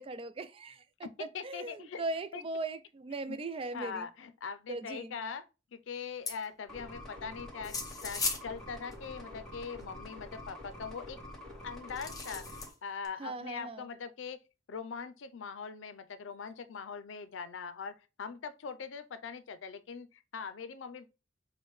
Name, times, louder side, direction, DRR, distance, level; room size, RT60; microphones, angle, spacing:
voice 1, 0.0-4.1 4.7-5.2 13.2-13.9, right 2 dB, 30° right, 0.3 m, -39 dB
voice 2, 1.3-2.0 2.3-2.4 3.3-3.4 3.7-5.4 5.7-7.8 8.0-11.2 11.6-14.4 14.7-21.1, left 6 dB, 85° left, 0.5 m, -42 dB
sound 1, 6.3-6.5 7.6-8.4 8.9-9.0 9.8-9.9 11.9-12.7 13.0-13.1, left 4 dB, 20° left, 0.7 m, -36 dB
sound 2, 6.7-12.7, left 1 dB, 5° left, 1.2 m, -47 dB
6.2 x 2.2 x 3.1 m
head